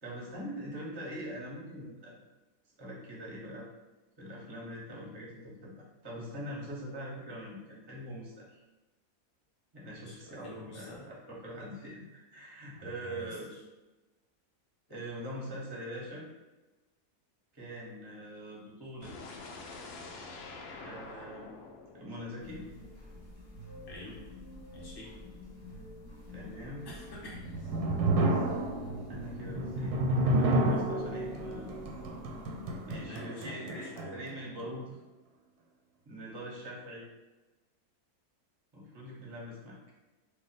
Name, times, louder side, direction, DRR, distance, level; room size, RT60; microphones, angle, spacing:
voice 1, 0.0-2.2 2.8-3.7 4.2-5.7 6.0-8.6 9.7-13.5 14.9-16.2 17.5-19.3 20.8-21.5 21.9-22.6 26.3-26.9 29.1-31.8 32.9-35.0 36.1-37.0 38.7-39.8, equal, 30° right, -4 dB, 0.4 m, -43 dB
voice 2, 10.0-11.1 12.7-13.6 23.9-24.2 24.7-25.1 26.8-27.4 33.0-34.2, left 1 dB, 30° left, -5 dB, 0.4 m, -47 dB
sound 1, 19.0-23.0, left 3 dB, 85° left, 0.5 m, -47 dB
sound 2, 22.4-33.1, left 2 dB, 50° left, 0.9 m, -48 dB
sound 3, 27.1-34.4, right 1 dB, 90° right, 1.1 m, -31 dB
2.5 x 2.3 x 4.0 m, 1.1 s
omnidirectional pair, 1.6 m